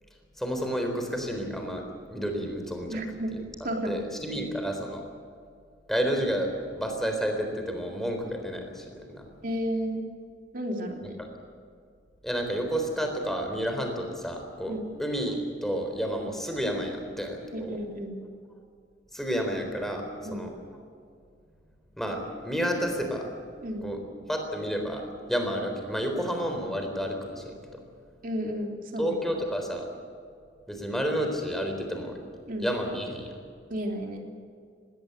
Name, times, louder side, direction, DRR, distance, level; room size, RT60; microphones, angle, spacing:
voice 1, 0.4-1.8 2.1-3.0 3.3-3.4 3.9-5.0 5.9-9.2 12.2-17.8 19.1-20.5 22.0-23.3 23.8-24.0 24.3-27.5 29.0-29.9 30.7-32.2 32.6-33.3, equal, ahead, 3 dB, 3.9 m, -30 dB
voice 2, 2.9-3.3 3.6-4.0 4.3-4.4 9.4-10.1 10.5-11.2 14.7-14.8 17.5-18.2 20.2-20.4 23.6-23.9 28.2-29.2 32.5-32.7 33.7-34.2, equal, 50° right, 2 dB, 3.3 m, -32 dB
19.5 x 17.5 x 8.3 m, 2.3 s
head